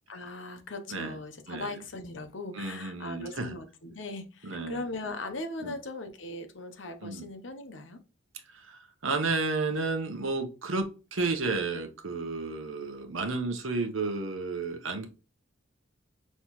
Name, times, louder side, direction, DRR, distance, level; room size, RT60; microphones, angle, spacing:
voice 1, 0.1-8.0, left 2 dB, 70° left, 0.9 m, -39 dB
voice 2, 2.6-3.5 4.4-4.8 5.6-5.7 7.0-7.3 8.7-15.1, right 3 dB, 90° right, 0.9 m, -32 dB
5.5 x 3.1 x 3.0 m
head